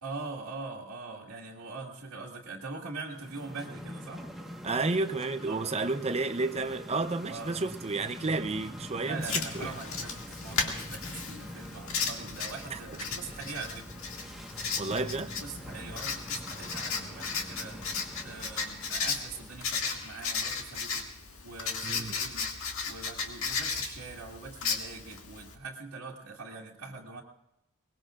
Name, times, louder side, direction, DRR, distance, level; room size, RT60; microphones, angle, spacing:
voice 1, 0.0-4.3 5.5-6.1 7.3-7.6 9.0-13.9 15.4-17.9 18.2-21.1 21.4-22.6 22.9-27.2, right 3 dB, 75° right, -4 dB, 2.0 m, -43 dB
sound 1, 3.0-19.7, equal, ahead, 1.3 m, -45 dB
voice 2, 4.6-9.7 12.7-12.8 14.8-15.3 21.8-22.1, right 3 dB, 30° right, 9 dB, 0.7 m, -31 dB
Writing, 9.2-25.5, left 5 dB, 65° left, 2.1 m, -35 dB
23.0 x 20.0 x 2.5 m, 0.83 s
head